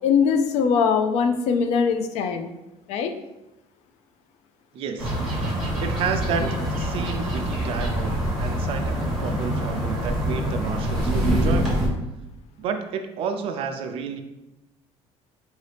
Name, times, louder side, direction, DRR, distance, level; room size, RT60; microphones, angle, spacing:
voice 1, 0.0-2.5 2.9-3.1, left 6 dB, 65° left, 7 dB, 0.4 m, -21 dB
voice 2, 4.7-5.1 5.8-11.8 12.6-14.2, right 6 dB, 50° right, 6 dB, 0.4 m, -31 dB
sound 1, 5.0-11.9, equal, ahead, 1.2 m, -25 dB
4.8 x 2.7 x 3.3 m, 0.96 s
cardioid pair, 165°, 12 cm